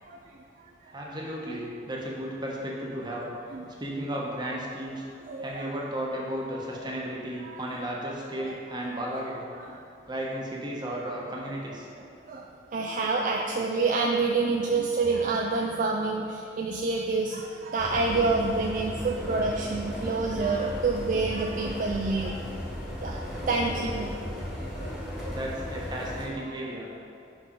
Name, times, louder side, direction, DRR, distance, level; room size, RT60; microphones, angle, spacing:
voice 1, 0.9-3.3 3.8-5.0 5.4-9.4 10.1-11.9 23.5-23.9 25.3-27.0, right 1 dB, 25° right, -3 dB, 1.1 m, -34 dB
voice 2, 5.3-5.7 7.4-7.6 9.6-9.7 12.2-12.5 12.7-22.4 23.0-24.1 24.7-24.9 25.2-25.4 26.5-26.6, right 3 dB, 45° right, 0 dB, 0.4 m, -28 dB
sound 1, 17.8-26.3, equal, ahead, 1.4 m, -36 dB
6.0 x 5.1 x 5.2 m, 2.6 s
head